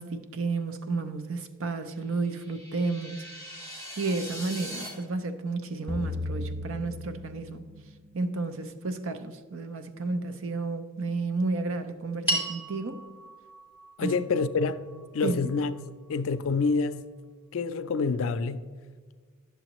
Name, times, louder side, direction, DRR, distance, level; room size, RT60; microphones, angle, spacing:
voice 1, 0.0-3.3 4.0-7.6 8.1-13.0 14.0-14.2 15.2-15.4, right 3 dB, 65° right, 0.6 m, -32 dB
sound 1, 2.1-4.9, equal, 30° right, 2.3 m, -41 dB
sound 2, 5.9-8.3, left 2 dB, 5° left, 0.5 m, -36 dB
sound 3, 12.3-16.7, right 1 dB, 10° right, 1.4 m, -36 dB
voice 2, 14.0-14.9 15.1-15.8 16.1-17.0 17.5-18.7, left 4 dB, 70° left, 0.4 m, -27 dB
10.5 x 6.9 x 3.0 m
head